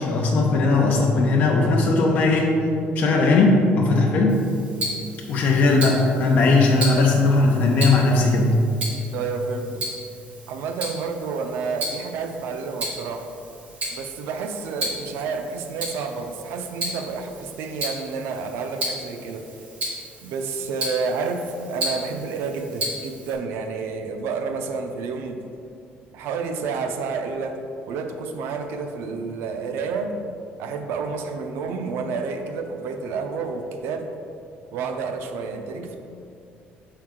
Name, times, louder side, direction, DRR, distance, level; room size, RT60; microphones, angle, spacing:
voice 1, 0.0-2.5 2.9-4.4 5.3-8.6, left 3 dB, 45° left, -2 dB, 0.6 m, -18 dB
Tick-tock, 4.3-23.3, right 1 dB, 40° right, 1.3 m, -34 dB
voice 2, 9.1-9.9 10.5-13.3 13.9-19.5 20.2-25.4 26.1-27.6 27.9-30.1 30.6-34.1 34.7-36.0, right 4 dB, 90° right, 6 dB, 0.5 m, -30 dB
6.3 x 4.5 x 3.7 m, 2.5 s
cardioid pair, 175°, 4 cm